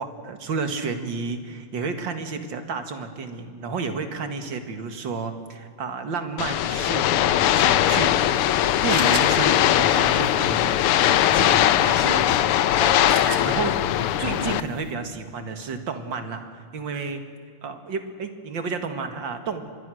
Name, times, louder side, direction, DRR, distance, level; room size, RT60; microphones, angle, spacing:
voice 1, 0.0-8.5 8.8-13.8 14.2-17.2 17.6-19.7, right 4 dB, 60° right, 7 dB, 2.5 m, -31 dB
sound 1, 6.4-14.6, left 12 dB, 90° left, 1.7 m, -20 dB
sound 2, 8.1-14.9, right 5 dB, 90° right, 2.6 m, -40 dB
26.0 x 21.5 x 6.4 m, 2.1 s
omnidirectional pair, 2.4 m